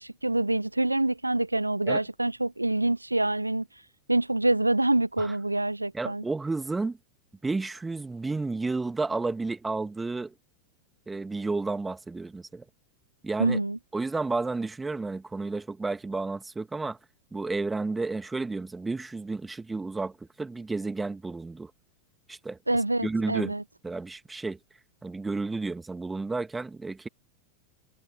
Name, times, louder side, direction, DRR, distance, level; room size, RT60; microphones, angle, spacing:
voice 1, 0.0-3.7 4.1-6.2 13.4-13.8 22.7-23.6, right 2 dB, 85° right, 0.9 m, -26 dB
voice 2, 5.9-7.0 7.4-10.3 11.1-12.6 13.2-13.6 13.9-17.0 17.3-21.7 22.3-22.6 23.0-23.5 23.8-24.6 25.0-27.1, right 3 dB, 10° right, 2.0 m, -31 dB
figure-of-eight pair, 90°, 0 cm